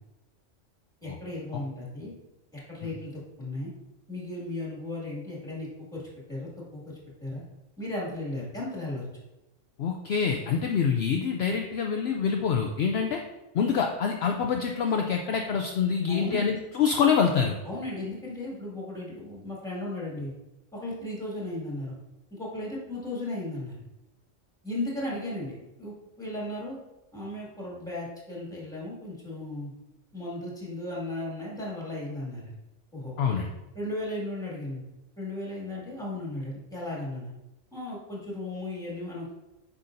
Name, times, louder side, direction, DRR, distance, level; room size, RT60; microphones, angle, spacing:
voice 1, 1.0-2.1 2.5-3.1 3.4-3.7 4.1-6.0 6.3-7.4 7.8-9.0 16.1-16.5 17.6-20.3 20.7-21.9 22.3-23.8 24.6-26.8 27.1-29.7 30.1-32.6 32.9-33.5 33.7-34.8 35.2-37.3 37.7-39.3, left 1 dB, 5° left, -5 dB, 2.1 m, -35 dB
voice 2, 9.8-13.2 13.5-17.5 33.2-33.5, left 6 dB, 65° left, 3 dB, 0.8 m, -26 dB
8.3 x 5.7 x 2.6 m, 0.98 s
omnidirectional pair, 1.3 m